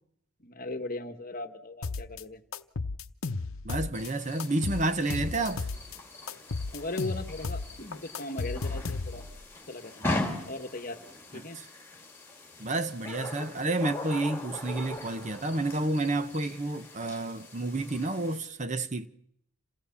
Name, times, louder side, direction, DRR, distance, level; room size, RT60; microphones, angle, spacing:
voice 1, 0.4-2.4 6.7-9.3 9.7-10.2 10.5-11.0 11.3-11.6, left 2 dB, 40° left, 1.2 m, -38 dB
sound 1, 1.8-2.2 2.5-4.1 4.4-6.0 6.3-9.4, left 3 dB, 75° left, 0.8 m, -34 dB
voice 2, 3.6-5.7 11.5-11.7 12.6-19.1, right 2 dB, 35° right, 0.8 m, -30 dB
sound 2, 3.9-18.4, left 2 dB, 10° left, 2.8 m, -40 dB
27.5 x 16.5 x 7.1 m
head